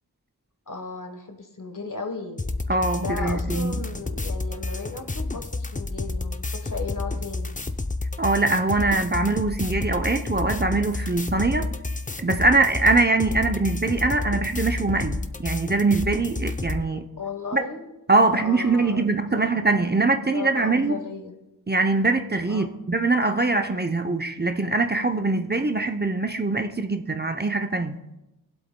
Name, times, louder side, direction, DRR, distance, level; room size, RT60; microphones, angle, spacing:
voice 1, 0.7-2.4 2.9-7.6 17.2-17.9 18.2-19.4 20.3-21.4 22.5-22.7, left 4 dB, 55° left, 5 dB, 1.2 m, -35 dB
sound 1, 2.4-16.8, left 2 dB, 20° left, 0.5 m, -30 dB
voice 2, 2.7-3.9 8.2-11.7 12.2-17.1 17.5-17.6 18.1-21.0 21.7-28.0, right 3 dB, 25° right, 6 dB, 0.6 m, -23 dB
21.0 x 7.9 x 2.2 m, 0.94 s
wide cardioid pair, 50°, 38 cm